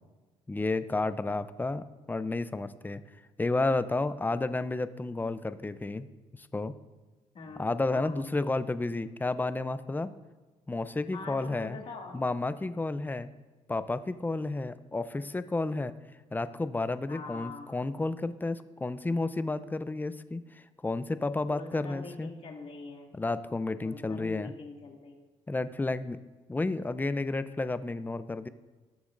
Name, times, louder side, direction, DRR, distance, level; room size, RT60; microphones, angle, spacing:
voice 1, 0.5-3.0 3.4-6.1 6.4-6.7 7.6-10.1 10.7-11.8 12.1-13.3 13.7-15.9 16.3-22.3 23.1-24.5 25.5-26.2 26.5-28.5, left 2 dB, 15° left, 13 dB, 0.5 m, -31 dB
voice 2, 11.1-12.2 17.1-17.7 21.5-23.1 23.8-25.2, left 4 dB, 50° left, 0 dB, 2.2 m, -43 dB
19.0 x 6.9 x 2.6 m, 1.3 s
cardioid pair, 85°, 13 cm